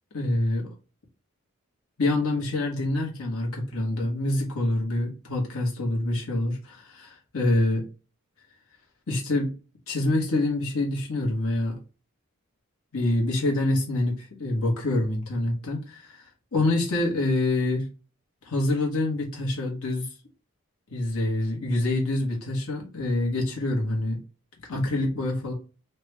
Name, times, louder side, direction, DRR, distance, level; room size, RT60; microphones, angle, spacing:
voice 1, 0.1-0.7 2.0-7.8 9.1-9.5 9.9-11.8 12.9-16.2 16.5-17.9 18.4-20.1 20.9-24.2 24.7-25.5, left 2 dB, 85° left, 1.1 m, -26 dB
3.2 x 2.3 x 3.2 m
head